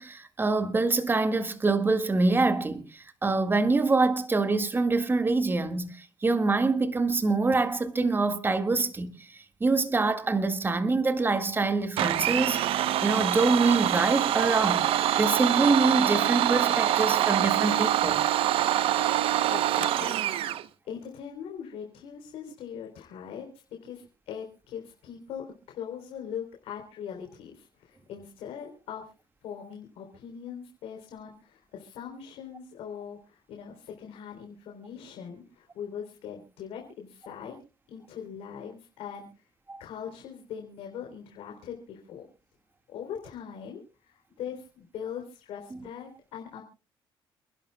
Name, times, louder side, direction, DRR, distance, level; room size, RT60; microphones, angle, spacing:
voice 1, 0.0-9.3 9.6-14.9 15.2-18.2 39.7-39.8, right 3 dB, 20° right, 1.9 m, -25 dB
Domestic sounds home sounds, 12.0-20.6, right 12 dB, 75° right, 0.9 m, -25 dB
voice 2, 19.5-20.2 20.9-29.1 29.4-37.6 37.9-39.4 39.8-42.2 42.9-46.6, left 8 dB, 85° left, 3.7 m, -41 dB
29.0 x 11.5 x 2.3 m
cardioid pair, 105°, 10 cm